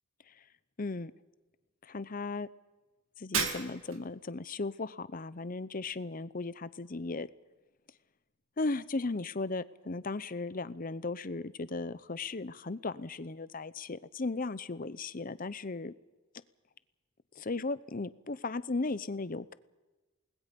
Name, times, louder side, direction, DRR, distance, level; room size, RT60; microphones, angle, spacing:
voice 1, 0.8-1.1 1.8-2.5 3.2-7.3 8.6-15.9 17.4-19.5, left 3 dB, 40° left, 16 dB, 0.7 m, -36 dB
Shatter, 3.3-4.1, right 6 dB, 70° right, 2.6 m, -33 dB
28.5 x 20.5 x 5.3 m, 1.2 s
head